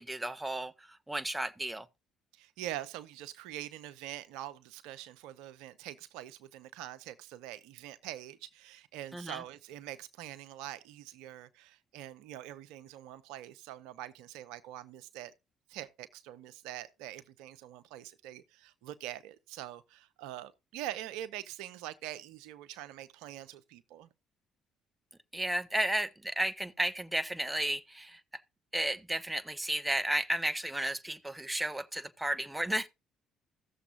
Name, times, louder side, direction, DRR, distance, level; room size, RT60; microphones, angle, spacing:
voice 1, 0.0-1.9 9.1-9.4 25.3-28.2 28.7-32.9, right 1 dB, 10° right, 1.0 m, -33 dB
voice 2, 2.3-15.3 15.7-24.1, right 13 dB, 70° right, 0.6 m, -44 dB
16.0 x 6.9 x 2.5 m
hypercardioid pair, 50°, 0 cm